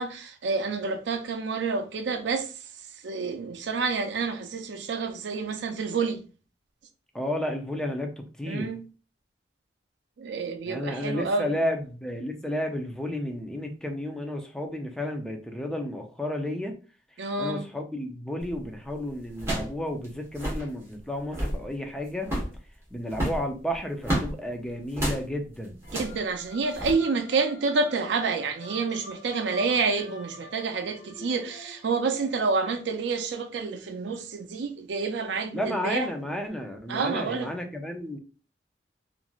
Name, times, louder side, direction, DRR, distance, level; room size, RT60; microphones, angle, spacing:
voice 1, 0.0-2.6 2.9-6.2 8.5-8.8 10.2-11.5 17.2-17.7 25.9-36.1 36.9-37.5, right 4 dB, 75° right, 0.4 m, -28 dB
voice 2, 7.1-8.7 10.6-16.8 17.4-22.3 22.9-25.8 35.5-38.2, left 1 dB, 5° left, 0.5 m, -32 dB
sound 1, 18.4-18.7 19.4-19.8 20.0-20.1 20.3-20.7 21.2-21.6 22.2-22.6 23.1-24.3 24.9-25.2 25.8-26.2 26.7-26.9, right 1 dB, 15° right, 1.1 m, -30 dB
sound 2, 25.8-32.4, left 1 dB, 70° left, 0.6 m, -47 dB
3.0 x 2.5 x 2.3 m
head